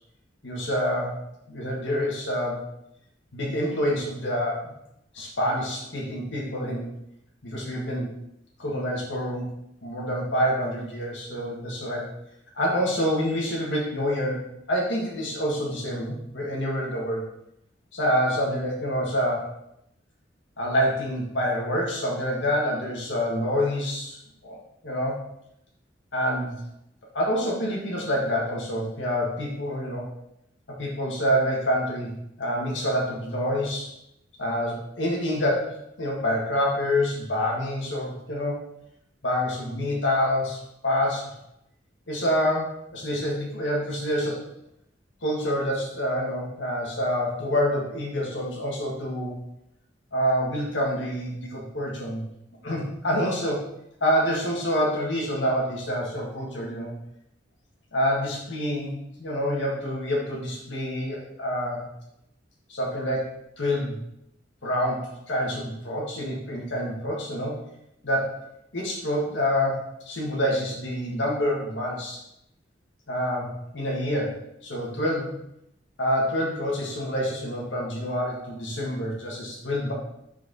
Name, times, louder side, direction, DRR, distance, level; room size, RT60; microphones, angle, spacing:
voice 1, 0.4-1.2 1.5-2.6 3.3-4.7 5.1-6.9 7.4-8.1 8.6-9.4 9.8-12.1 12.5-14.4 14.7-17.3 17.9-19.5 20.6-24.2 24.4-25.2 26.1-26.6 27.1-30.1 30.8-32.1 32.4-33.9 34.4-38.6 39.2-41.3 42.1-44.4 45.2-49.4 50.1-52.3 52.6-53.6 54.0-56.9 57.9-58.9 59.2-61.9 62.7-64.0 64.6-67.6 68.0-68.4 68.7-72.2 73.1-75.4 76.0-79.9, equal, 85° left, -3 dB, 1.7 m, -27 dB
6.1 x 4.6 x 4.0 m, 0.80 s
head